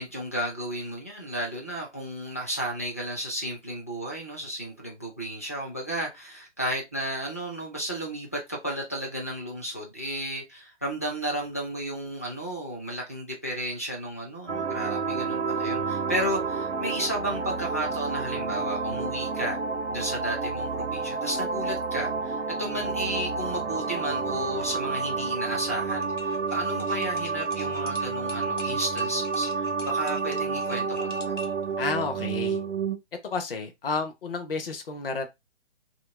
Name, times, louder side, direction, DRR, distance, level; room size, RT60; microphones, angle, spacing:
voice 1, 0.0-19.6 19.9-31.4, right 1 dB, 15° left, 0.4 m, -33 dB
sound 1, 14.5-33.0, right 4 dB, 80° right, 0.6 m, -30 dB
sound 2, 25.8-31.6, left 2 dB, 85° left, 1.2 m, -44 dB
voice 2, 31.8-32.6 33.2-35.3, left 4 dB, 50° left, 0.9 m, -31 dB
2.9 x 2.8 x 3.3 m
figure-of-eight pair, 135°, 36 cm